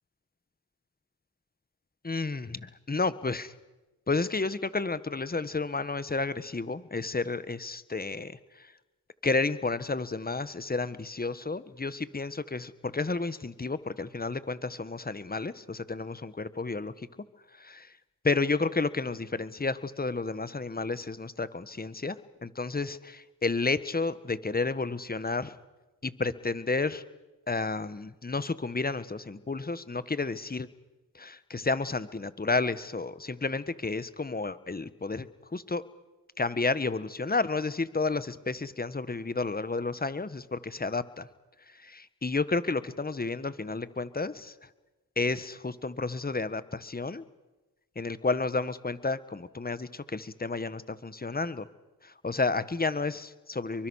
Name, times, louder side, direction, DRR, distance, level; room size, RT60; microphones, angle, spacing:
voice 1, 2.0-3.5 4.1-8.4 9.2-16.9 17.6-17.9 18.2-22.2 22.4-25.5 26.0-27.0 27.5-30.7 31.2-35.3 35.5-35.8 36.4-41.3 41.8-44.5 45.2-47.2 47.9-51.7 52.2-53.9, left 3 dB, 25° left, 14 dB, 1.5 m, -31 dB
28.0 x 23.5 x 6.5 m, 1.1 s
cardioid pair, 60°, 40 cm